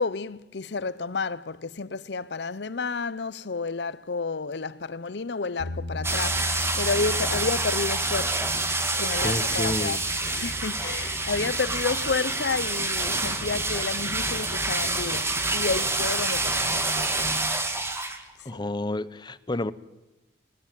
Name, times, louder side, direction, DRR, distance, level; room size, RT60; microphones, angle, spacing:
voice 1, 0.0-8.5 9.0-10.0 10.2-17.3 18.5-18.6, left 4 dB, 65° left, 0.7 m, -31 dB
sound 1, 5.6-17.9, left 1 dB, 70° right, 7.1 m, -40 dB
sound 2, 6.0-18.2 18.5-18.6, right 2 dB, 15° right, 2.1 m, -27 dB
voice 2, 9.2-10.0 18.4-19.7, left 1 dB, 25° left, 0.8 m, -30 dB
Thunder, 13.0-18.2, equal, 35° right, 5.0 m, -47 dB
20.0 x 20.0 x 9.2 m
head